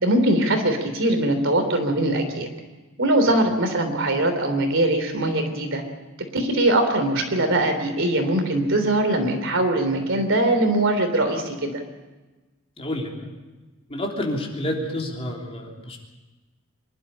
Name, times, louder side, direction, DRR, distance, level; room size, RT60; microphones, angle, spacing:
voice 1, 0.0-2.5 3.0-5.8 6.3-11.8, right 1 dB, 65° right, 6 dB, 3.4 m, -21 dB
voice 2, 12.8-13.3 13.9-16.0, left 1 dB, 30° left, 0 dB, 3.4 m, -29 dB
25.0 x 12.0 x 9.9 m, 1.2 s
head